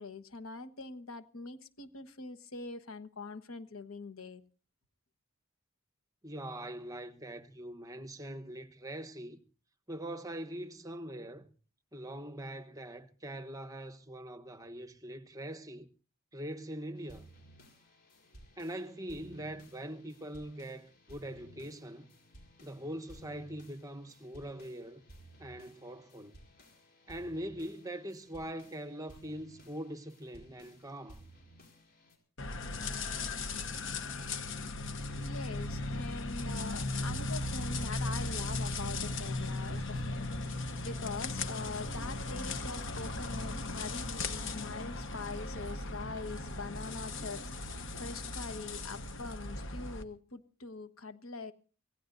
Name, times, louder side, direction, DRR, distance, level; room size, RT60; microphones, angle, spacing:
voice 1, 0.0-4.4 35.2-51.5, left 3 dB, 85° left, 1.3 m, -43 dB
voice 2, 6.2-9.4 9.9-11.5 11.9-15.9 16.3-17.3 18.6-22.1 22.6-25.0 25.4-26.4 27.1-31.3, right 1 dB, 15° right, 1.1 m, -42 dB
sound 1, 17.0-32.2, right 1 dB, 50° left, 4.9 m, -58 dB
sound 2, 32.4-50.0, left 2 dB, 65° left, 1.3 m, -37 dB
26.5 x 17.0 x 2.6 m
head